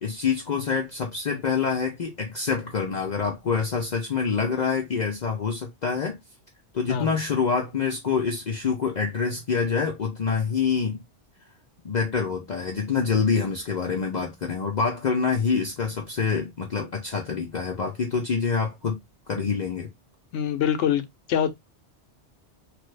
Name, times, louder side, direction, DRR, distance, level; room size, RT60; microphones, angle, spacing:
voice 1, 0.0-6.2 6.7-11.0 11.8-19.0 19.3-19.9, left 5 dB, 50° left, 0.6 m, -26 dB
voice 2, 20.3-21.5, left 9 dB, 90° left, 0.9 m, -24 dB
3.2 x 2.2 x 3.1 m
omnidirectional pair, 1.2 m